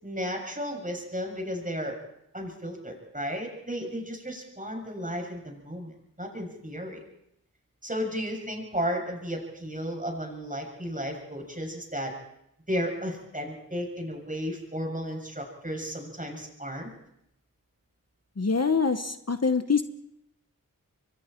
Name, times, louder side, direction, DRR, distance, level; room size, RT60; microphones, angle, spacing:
voice 1, 0.0-2.0 2.3-5.9 6.2-7.0 7.8-12.1 12.7-16.9, equal, 25° right, 2 dB, 7.1 m, -34 dB
voice 2, 18.4-19.8, left 5 dB, 50° left, 9 dB, 1.1 m, -25 dB
28.5 x 23.5 x 4.5 m, 0.78 s
wide cardioid pair, 50°, 34 cm